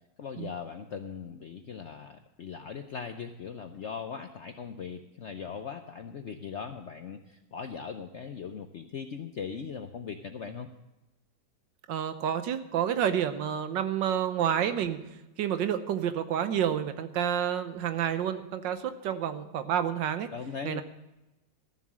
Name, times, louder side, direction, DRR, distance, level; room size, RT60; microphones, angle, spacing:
voice 1, 0.2-10.7 20.3-20.8, left 6 dB, 65° left, 7 dB, 0.7 m, -39 dB
voice 2, 11.9-15.0 15.4-20.3 20.6-20.8, right 9 dB, 80° right, 10 dB, 1.5 m, -29 dB
13.5 x 7.4 x 7.4 m, 1.0 s
omnidirectional pair, 2.0 m